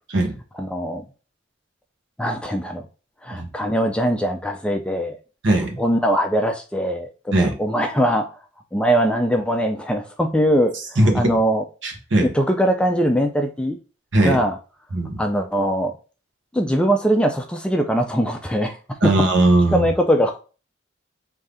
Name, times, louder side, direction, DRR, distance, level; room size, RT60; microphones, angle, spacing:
voice 1, 0.6-1.0 2.2-2.8 3.2-5.2 5.8-8.3 8.7-11.6 12.3-13.8 14.2-14.6 15.2-15.9 16.5-18.8 19.0-19.1 19.7-20.4, equal, 5° left, 4 dB, 0.3 m, -21 dB
voice 2, 5.4-5.8 7.3-7.5 11.0-11.3 11.8-12.3 14.1-14.4 14.9-15.2 19.0-19.9, right 1 dB, 70° right, 4 dB, 1.0 m, -19 dB
3.4 x 2.7 x 3.6 m, 0.35 s
head